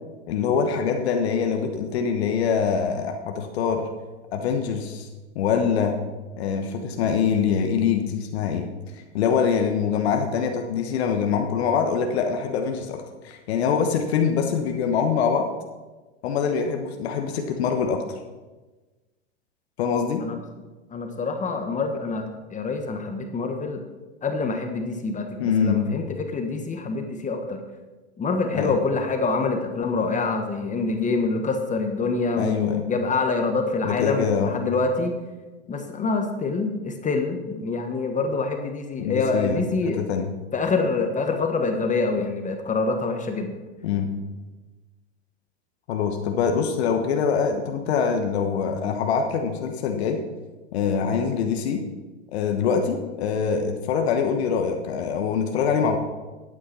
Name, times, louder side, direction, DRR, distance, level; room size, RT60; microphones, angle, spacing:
voice 1, 0.3-3.9 4.3-5.1 5.3-6.0 6.4-8.7 9.1-15.5 16.2-18.2 19.8-20.2 25.4-25.9 28.5-28.7 32.4-32.8 33.8-34.5 39.0-39.6 40.0-40.3 43.8-44.1 45.9-50.2 50.7-51.8 52.3-56.0, left 6 dB, 65° left, 4 dB, 1.3 m, -24 dB
voice 2, 20.9-23.8 24.2-27.6 28.2-35.1 35.7-40.0 40.5-43.6, left 3 dB, 20° left, 5 dB, 1.4 m, -26 dB
12.5 x 9.0 x 4.4 m, 1.2 s
hypercardioid pair, 100°, 34 cm